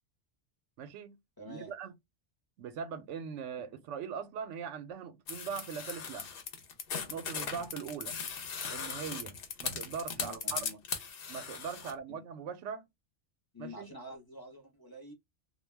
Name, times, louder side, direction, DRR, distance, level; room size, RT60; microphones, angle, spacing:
voice 1, 0.8-1.2 1.5-1.9 2.6-6.3 7.1-8.2 8.7-10.7 11.3-12.8 13.6-13.9, right 7 dB, 90° right, 0.9 m, -41 dB
voice 2, 1.4-1.7 3.7-3.8 10.2-10.8 11.8-12.2 13.5-15.1, left 1 dB, 25° left, 0.7 m, -48 dB
sound 1, 5.3-11.9, left 6 dB, 60° left, 0.8 m, -38 dB
2.3 x 2.1 x 3.2 m
omnidirectional pair, 1.2 m